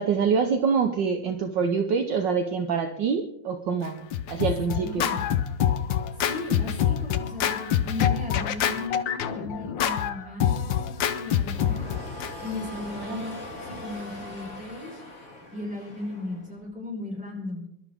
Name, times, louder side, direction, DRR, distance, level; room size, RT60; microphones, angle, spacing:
voice 1, 0.0-4.0 4.3-5.1 13.1-13.2, right 6 dB, 65° right, 6 dB, 1.5 m, -25 dB
Scratching (performance technique), 3.8-12.3, left 9 dB, 65° left, 1.5 m, -26 dB
voice 2, 4.8-5.3 6.2-11.9 12.4-15.0 15.5-17.7, left 2 dB, 5° right, -3 dB, 4.6 m, -36 dB
sound 1, 11.5-16.6, left 2 dB, 35° left, 2.9 m, -40 dB
24.5 x 12.0 x 3.6 m, 0.78 s
omnidirectional pair, 2.3 m